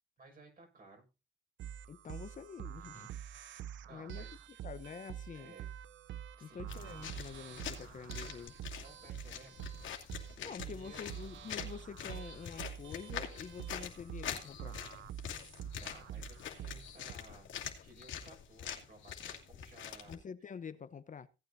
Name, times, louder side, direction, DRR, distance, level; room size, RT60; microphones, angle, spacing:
voice 1, 0.2-1.1 3.8-4.5 5.3-5.7 6.4-6.8 7.3-7.5 8.8-9.6 10.4-11.1 15.7-20.3, right 2 dB, 45° right, 6.0 m, -58 dB
sound 1, 1.6-17.1, right 10 dB, 70° right, 0.7 m, -46 dB
voice 2, 1.9-3.1 3.9-4.3 4.6-5.5 6.4-8.5 10.4-14.8 20.1-21.3, left 6 dB, 40° left, 0.8 m, -47 dB
sound 2, 6.7-20.1, left 9 dB, 75° left, 2.6 m, -45 dB
17.0 x 9.3 x 2.7 m
cardioid pair, 90°, 20 cm